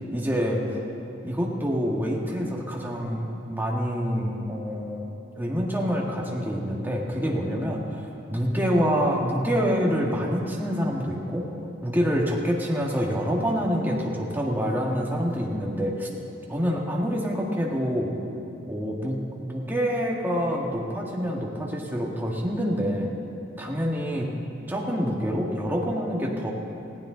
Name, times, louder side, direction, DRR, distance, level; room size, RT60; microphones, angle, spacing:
voice 1, 0.1-0.8 1.2-5.0 5.4-11.5 11.8-16.1 16.5-18.1 18.7-23.1 23.6-24.3 24.7-26.5, equal, 10° right, -2 dB, 1.8 m, -26 dB
20.0 x 15.0 x 3.9 m, 2.8 s
head